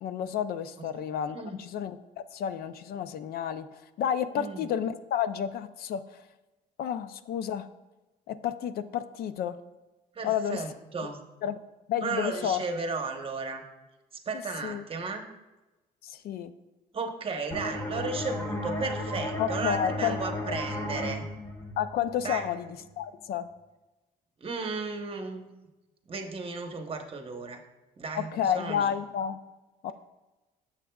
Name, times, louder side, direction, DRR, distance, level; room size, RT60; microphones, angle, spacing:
voice 1, 0.0-2.0 2.3-6.2 6.8-7.7 8.3-9.6 10.2-10.6 11.4-11.6 11.9-12.6 14.6-14.8 16.0-16.5 19.4-20.2 21.8-23.5 28.2-29.4 29.8-29.9, left 9 dB, 65° left, 12 dB, 0.5 m, -31 dB
voice 2, 10.1-11.2 12.0-13.6 14.1-15.2 16.9-21.3 22.2-22.5 24.4-25.4 26.1-27.6 28.0-28.9, right 4 dB, 35° right, 4 dB, 1.0 m, -34 dB
sound 1, 17.5-22.9, left 1 dB, 20° left, 1.3 m, -35 dB
9.8 x 7.3 x 2.3 m, 1.1 s
cardioid pair, 110°, 17 cm